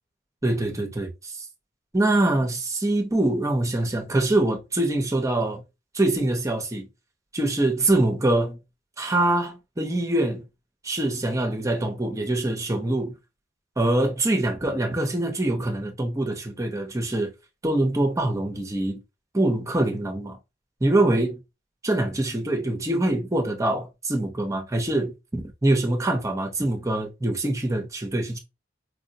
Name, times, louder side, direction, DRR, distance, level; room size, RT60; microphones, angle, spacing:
voice 1, 0.4-1.4 1.9-5.6 5.9-6.9 7.3-8.6 9.0-10.5 10.8-13.1 13.8-17.3 17.6-19.0 19.3-20.4 20.8-21.4 21.8-28.4, right 1 dB, 15° right, 0.6 m, -24 dB
4.5 x 2.0 x 2.7 m
head